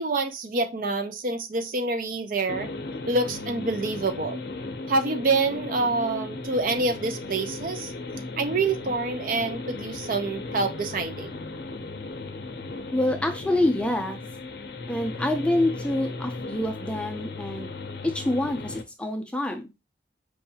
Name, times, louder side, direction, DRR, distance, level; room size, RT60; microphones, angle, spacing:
voice 1, 0.0-2.7 3.1-4.4 4.9-7.9 8.4-11.3, right 3 dB, 50° right, 0.5 m, -27 dB
sound 1, 2.5-18.8, left 2 dB, 60° left, 0.6 m, -36 dB
voice 2, 12.9-14.2 14.9-17.7 18.0-19.7, left 1 dB, 5° left, 0.5 m, -26 dB
4.7 x 2.6 x 2.7 m
head